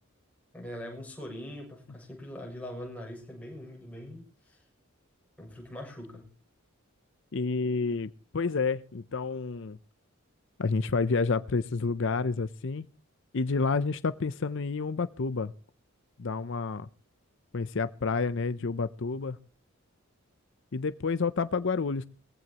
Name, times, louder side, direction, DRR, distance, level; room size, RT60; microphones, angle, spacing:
voice 1, 0.5-4.6 5.4-6.3, left 1 dB, 5° left, 7.1 m, -42 dB
voice 2, 7.3-9.8 10.6-12.9 13.3-15.5 16.2-16.9 17.5-19.4 20.7-22.0, left 4 dB, 60° left, 0.6 m, -29 dB
22.0 x 15.5 x 2.9 m
head